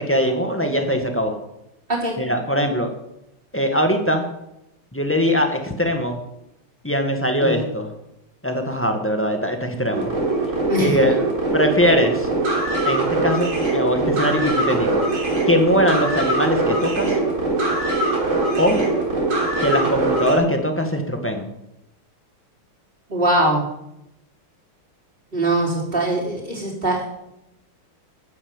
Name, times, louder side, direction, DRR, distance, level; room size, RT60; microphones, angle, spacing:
voice 1, 0.0-1.4 2.2-2.9 3.5-4.3 4.9-6.2 6.8-7.9 8.4-10.1 10.8-12.3 12.8-15.0 15.5-17.2 18.6-18.8 19.6-21.5, equal, 5° left, 4 dB, 1.5 m, -21 dB
sound 1, 9.9-20.4, right 2 dB, 70° right, 4.4 m, -22 dB
voice 2, 23.1-23.6 25.3-27.1, right 1 dB, 25° right, -3 dB, 4.3 m, -21 dB
11.5 x 10.0 x 7.3 m, 0.85 s
omnidirectional pair, 2.3 m